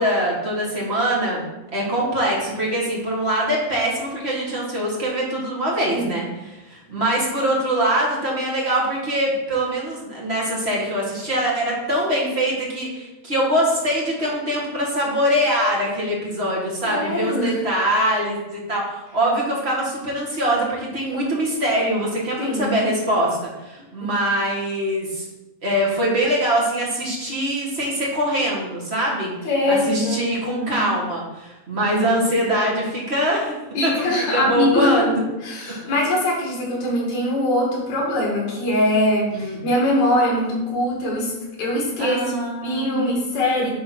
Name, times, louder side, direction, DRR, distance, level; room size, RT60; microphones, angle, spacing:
voice 1, 0.0-25.3 25.6-29.3 29.7-33.5 33.8-35.2 35.8-35.9 39.3-39.6 42.0-43.1, right 1 dB, 30° right, -3 dB, 1.3 m, -23 dB
voice 2, 16.8-17.5 22.4-22.8 24.0-24.1 29.4-30.3 30.6-30.8 33.7-35.1 35.4-41.3 41.6-42.4 42.6-43.7, left 1 dB, 65° left, -3 dB, 3.5 m, -22 dB
9.9 x 3.8 x 4.7 m, 1.0 s
omnidirectional pair, 3.6 m